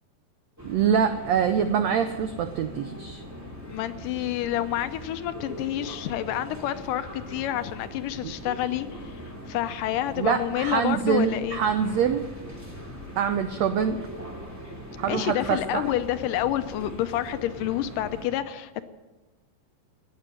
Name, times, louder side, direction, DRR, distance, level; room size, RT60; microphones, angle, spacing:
sound 1, 0.6-18.3, equal, 5° right, 2.3 m, -41 dB
voice 1, 0.6-3.2 8.2-8.3 10.2-12.3 13.2-14.0 15.0-15.8, right 7 dB, 90° right, 8 dB, 1.5 m, -25 dB
voice 2, 3.7-9.2 9.5-11.6 15.1-18.8, left 12 dB, 75° left, 11 dB, 2.2 m, -28 dB
18.0 x 7.9 x 9.8 m, 1.2 s
omnidirectional pair, 4.0 m